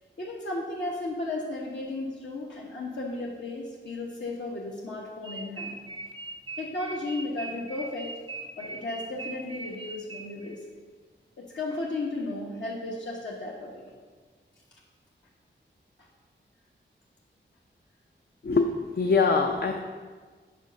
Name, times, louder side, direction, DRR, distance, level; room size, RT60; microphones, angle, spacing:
voice 1, 0.2-5.8 6.6-8.1 8.6-10.6 11.4-13.9 16.0-16.1, left 2 dB, 70° left, -4 dB, 1.2 m, -34 dB
sound 1, 5.2-10.6, right 3 dB, 25° right, 0.5 m, -40 dB
voice 2, 18.4-19.8, left 4 dB, 55° left, 3 dB, 0.5 m, -23 dB
8.1 x 4.3 x 6.3 m, 1.5 s
wide cardioid pair, 95°, 20 cm